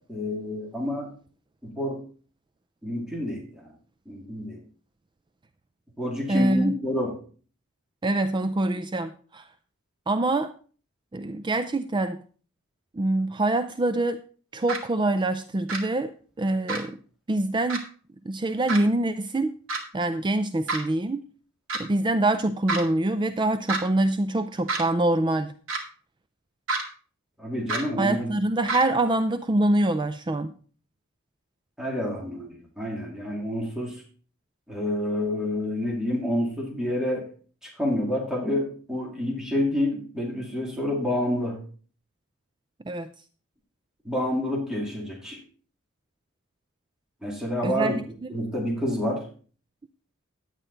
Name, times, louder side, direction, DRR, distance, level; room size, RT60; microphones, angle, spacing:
voice 1, 0.1-1.1 1.6-2.0 2.8-3.7 4.1-4.6 6.0-7.2 27.4-28.3 31.8-34.0 34.7-37.3 37.6-41.6 44.0-45.4 47.2-48.0 48.3-49.2, left 1 dB, 5° right, -3 dB, 2.2 m, -28 dB
voice 2, 6.3-6.7 8.0-9.4 10.1-10.5 11.1-12.2 12.9-14.2 14.5-17.0 17.3-17.8 18.3-19.5 19.9-21.2 21.8-25.5 28.0-30.5 42.9-43.1 47.6-48.0, right 2 dB, 20° right, 10 dB, 0.4 m, -25 dB
sound 1, 14.7-14.8 15.7-15.8 16.7-16.8 17.7-17.8 18.7-18.8 19.7-19.8 20.7-20.8 21.7-21.8 22.7-22.8 23.7-23.8 24.7-24.8 25.7-25.8 26.7-26.8 27.7-27.8 28.7-28.8, right 3 dB, 70° right, 2.3 m, -28 dB
11.0 x 8.9 x 3.9 m, 0.41 s
head